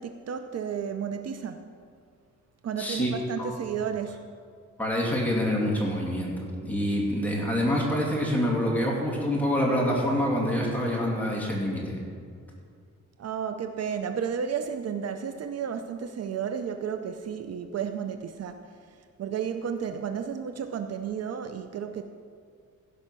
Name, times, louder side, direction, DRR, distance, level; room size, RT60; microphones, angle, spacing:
voice 1, 0.0-1.6 2.6-4.3 13.2-22.0, right 7 dB, 60° right, 8 dB, 0.6 m, -32 dB
voice 2, 2.8-3.1 3.4-3.6 4.8-6.3 6.6-12.0, equal, 5° left, -3 dB, 2.7 m, -26 dB
16.0 x 5.5 x 6.1 m, 2.2 s
cardioid pair, 125°, 29 cm